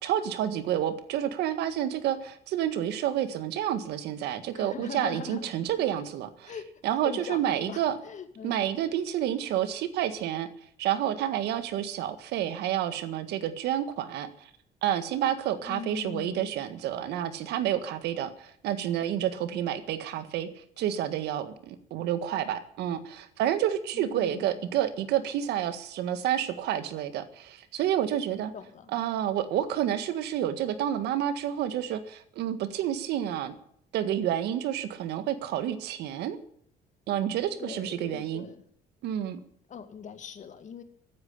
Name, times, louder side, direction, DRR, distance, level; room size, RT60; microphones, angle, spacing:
voice 1, 0.0-6.5 6.8-8.0 8.4-10.5 10.8-14.5 14.8-20.5 20.8-28.5 28.9-33.6 33.9-36.4 37.1-38.5 39.0-39.4, right 11 dB, 80° right, 11 dB, 1.8 m, -29 dB
voice 2, 4.5-5.5 6.4-6.6 7.0-8.6 15.6-16.6 23.9-24.6 28.5-28.9 37.6-38.6 39.7-40.8, left 7 dB, 45° left, 9 dB, 2.2 m, -41 dB
14.5 x 9.6 x 10.0 m, 0.63 s
cardioid pair, 110°, 17 cm